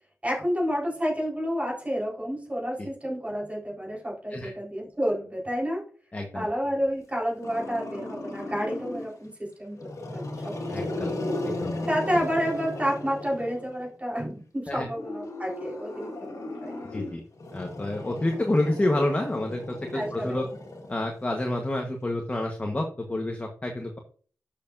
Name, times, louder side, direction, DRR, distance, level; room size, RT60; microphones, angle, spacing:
voice 1, 0.2-5.8 6.3-10.5 11.0-11.1 11.9-16.7 19.9-20.5, equal, 25° right, -4 dB, 4.5 m, -30 dB
voice 2, 6.1-6.5 10.7-11.1 11.4-11.7 14.7-14.8 16.9-17.2 17.5-20.4 20.9-24.0, left 1 dB, 25° left, 2 dB, 1.3 m, -28 dB
Growling, 7.4-9.2 9.7-13.9 14.9-21.4, left 2 dB, 65° left, 2.1 m, -36 dB
11.5 x 6.8 x 2.7 m, 0.43 s
wide cardioid pair, 105°, 6 cm